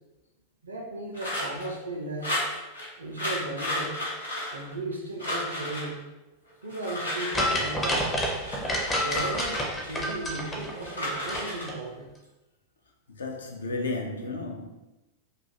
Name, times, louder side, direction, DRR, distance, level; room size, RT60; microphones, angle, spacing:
voice 1, 0.6-2.4 3.0-4.0 4.5-6.0 6.6-8.2 9.0-12.1, right 2 dB, 70° right, 0.4 m, -36 dB
sound 1, 1.1-1.7 2.2-2.9 3.2-4.9 5.2-5.9 6.6-7.8 8.4-10.0 10.4-11.7, left 1 dB, 85° left, 0.8 m, -33 dB
sound 2, 7.3-11.4 11.7-11.8, equal, 15° left, 0.5 m, -28 dB
voice 2, 13.1-14.7, left 2 dB, 70° left, 0.4 m, -33 dB
2.4 x 2.2 x 2.7 m
figure-of-eight pair, 90°, 0 cm